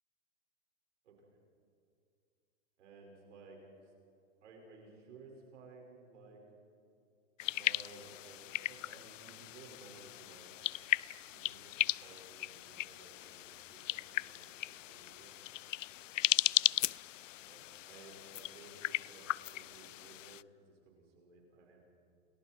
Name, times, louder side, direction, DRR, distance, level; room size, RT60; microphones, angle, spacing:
voice 1, 2.8-3.9 4.4-6.4 7.4-10.7 11.3-15.4 17.4-21.8, right 3 dB, 65° right, 0 dB, 5.9 m, -57 dB
sound 1, 7.4-20.4, left 14 dB, 75° left, 0.5 m, -37 dB
29.5 x 20.5 x 4.7 m, 2.5 s
hypercardioid pair, 145°, 39 cm